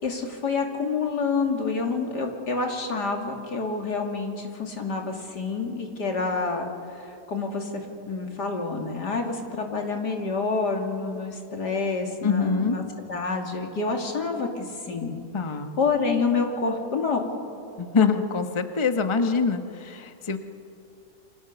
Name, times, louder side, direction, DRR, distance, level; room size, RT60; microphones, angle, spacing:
voice 1, 0.0-6.7 7.3-15.2 15.8-17.3, left 4 dB, 85° left, 2 dB, 3.4 m, -28 dB
voice 2, 12.2-12.8 15.3-15.7 17.8-20.4, left 5 dB, 20° left, 7 dB, 1.1 m, -24 dB
28.0 x 25.5 x 6.9 m, 2.5 s
omnidirectional pair, 1.8 m